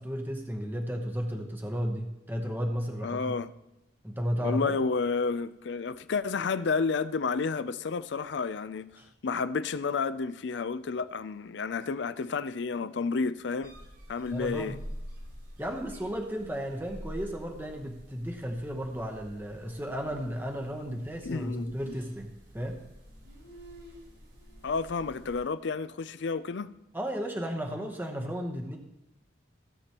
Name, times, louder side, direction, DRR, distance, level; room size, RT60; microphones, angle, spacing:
voice 1, 0.0-3.3 4.0-4.8 9.0-9.1 14.3-14.8 15.6-22.8 26.9-28.8, equal, 10° right, 0.9 m, -34 dB
voice 2, 3.0-3.5 4.4-13.7 14.1-14.8 21.2-22.0 24.6-26.7, left 4 dB, 65° left, 0.4 m, -31 dB
sound 1, 13.6-25.4, equal, 70° right, 3.9 m, -47 dB
16.5 x 7.8 x 3.0 m
head